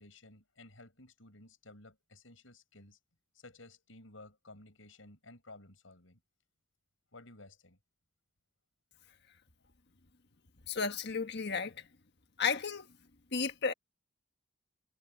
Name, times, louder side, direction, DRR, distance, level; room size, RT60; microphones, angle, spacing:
voice 1, 0.0-3.0 3.3-6.2 7.1-7.8 9.6-9.7, left 2 dB, 85° left, 6.5 m, -55 dB
voice 2, 10.7-11.9 12.4-12.9 13.3-13.7, left 5 dB, 60° left, 1.5 m, -33 dB
head